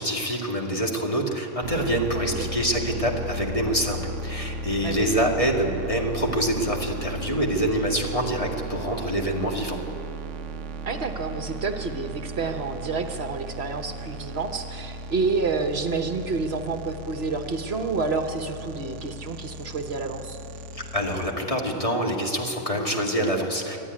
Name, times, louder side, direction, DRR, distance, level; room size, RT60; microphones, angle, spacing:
voice 1, 0.0-9.8 20.8-23.8, equal, 30° left, 0 dB, 2.1 m, -26 dB
sound 1, 1.6-21.3, right 1 dB, 85° right, 1.0 m, -36 dB
voice 2, 10.8-20.4, right 4 dB, 60° right, 6 dB, 1.3 m, -29 dB
24.0 x 11.5 x 9.6 m, 3.0 s
omnidirectional pair, 1.2 m